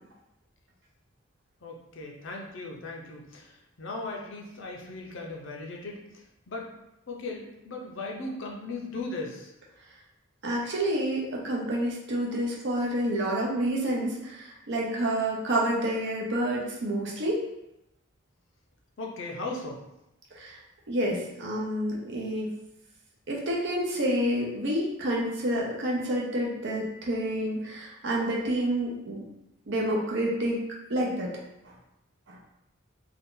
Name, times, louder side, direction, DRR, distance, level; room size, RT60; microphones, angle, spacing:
voice 1, 1.6-6.7 7.1-9.5 19.0-19.8, left 2 dB, 60° left, 0 dB, 0.6 m, -38 dB
voice 2, 10.4-17.4 20.4-20.6 20.9-22.5 23.3-29.2 29.7-30.6 30.9-31.3 32.3-32.4, right 1 dB, 55° right, -3 dB, 0.7 m, -28 dB
2.7 x 2.3 x 3.7 m, 0.86 s
head